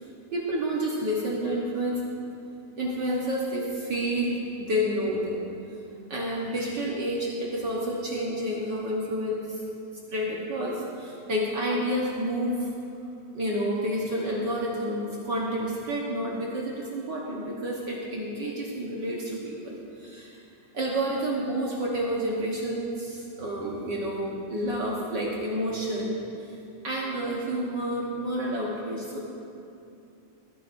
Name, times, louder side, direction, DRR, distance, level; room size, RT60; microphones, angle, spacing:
voice 1, 0.3-2.0 2.8-5.5 6.1-9.6 10.1-12.7 13.3-20.4 20.7-26.6 26.8-29.3, equal, 65° right, -4 dB, 1.1 m, -29 dB
20.5 x 10.0 x 2.6 m, 2.7 s
omnidirectional pair, 3.6 m